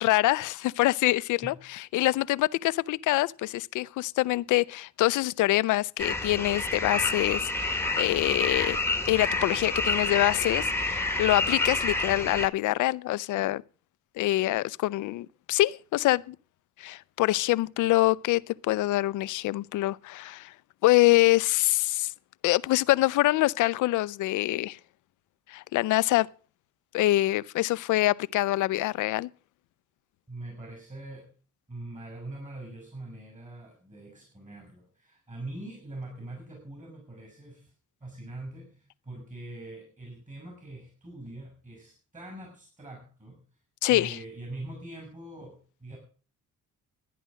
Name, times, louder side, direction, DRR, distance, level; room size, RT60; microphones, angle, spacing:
voice 1, 0.0-8.8 9.1-13.6 14.2-16.4 16.8-20.5 20.8-22.1 22.4-24.8 25.5-26.3 26.9-29.3 43.8-44.2, left 17 dB, 80° left, 0.5 m, -25 dB
sound 1, 6.0-12.5, left 2 dB, 10° left, 1.4 m, -29 dB
voice 2, 30.3-31.3 31.7-37.7 38.0-43.4 43.8-46.0, right 2 dB, 25° right, 6.5 m, -43 dB
12.5 x 10.0 x 6.3 m
cardioid pair, 90°, 30 cm